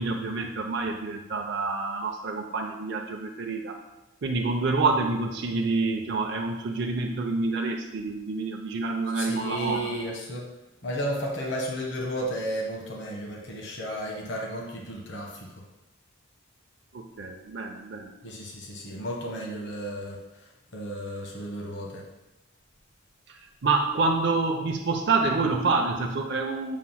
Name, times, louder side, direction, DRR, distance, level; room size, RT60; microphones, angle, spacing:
voice 1, 0.0-3.7 4.2-9.9 16.9-18.1 23.3-26.8, right 3 dB, 55° right, 1 dB, 0.5 m, -27 dB
voice 2, 9.1-10.5 10.8-15.5 18.2-20.4 20.7-22.0, equal, 60° left, -2 dB, 1.0 m, -33 dB
7.2 x 2.5 x 5.6 m, 0.98 s
head